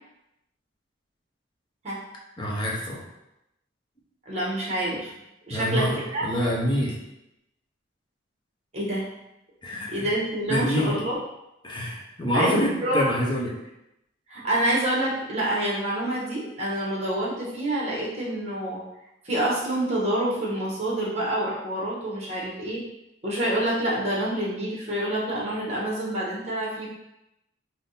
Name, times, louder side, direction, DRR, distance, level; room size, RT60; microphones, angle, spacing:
voice 1, 2.4-3.0 5.5-7.0 9.6-9.9 10.5-11.0 11.6-13.5, equal, 25° left, -3 dB, 0.8 m, -26 dB
voice 2, 4.2-5.1 5.5-6.2 8.7-9.0 9.9-11.2 12.3-13.1 14.3-18.8 19.2-22.8 23.2-26.9, right 1 dB, 35° right, -4 dB, 1.2 m, -27 dB
3.5 x 2.7 x 4.0 m, 0.88 s
head